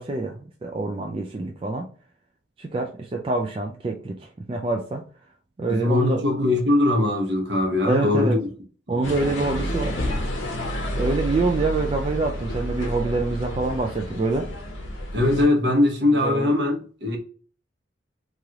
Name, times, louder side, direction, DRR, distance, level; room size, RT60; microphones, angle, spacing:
voice 1, 0.0-1.9 2.6-5.0 5.6-6.2 7.9-8.4 8.9-10.0 11.0-14.5 16.1-16.6, right 3 dB, 30° right, 0.3 m, -26 dB
voice 2, 5.7-8.4 8.9-9.0 15.1-17.2, left 2 dB, 65° right, 0.9 m, -21 dB
sound 1, 9.0-15.5, equal, 90° left, 0.8 m, -29 dB
3.2 x 2.4 x 2.8 m
head